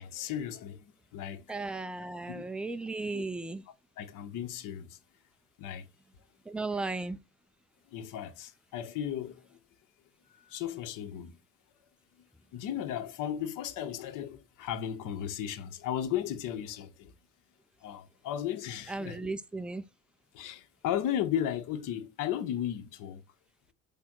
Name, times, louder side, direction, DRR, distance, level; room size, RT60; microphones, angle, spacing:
voice 1, 0.0-1.5 2.3-2.4 3.1-3.2 4.0-5.0 5.6-5.9 7.9-9.5 10.3-11.4 12.2-12.3 12.5-17.1 17.8-19.3 20.3-23.2, left 10 dB, 85° left, 1.7 m, -35 dB
voice 2, 1.5-3.6 6.5-7.2 18.9-19.8, right 3 dB, 5° right, 0.6 m, -35 dB
7.9 x 3.6 x 6.2 m
cardioid pair, 140°, 31 cm